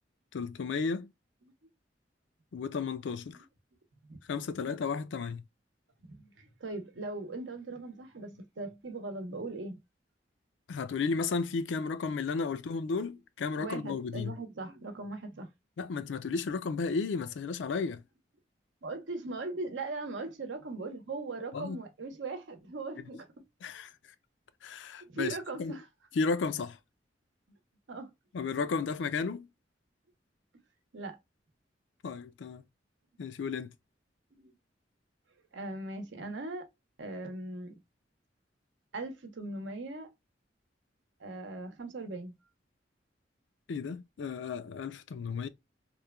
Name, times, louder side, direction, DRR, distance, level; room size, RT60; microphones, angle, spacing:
voice 1, 0.3-1.1 2.5-3.4 4.3-5.4 10.7-14.3 15.8-18.0 21.5-21.8 23.6-23.9 24.6-25.8 26.1-26.8 28.3-29.5 32.0-32.6 33.2-33.7 43.7-45.5, left 4 dB, 75° left, 0.4 m, -33 dB
voice 2, 6.1-9.8 13.5-15.5 18.8-23.3 25.1-25.8 27.9-28.1 30.9-31.2 34.3-34.5 35.5-36.7 37.0-37.8 38.9-40.1 41.2-42.4 45.1-45.3, right 2 dB, 85° right, 0.8 m, -39 dB
3.0 x 2.2 x 2.2 m
head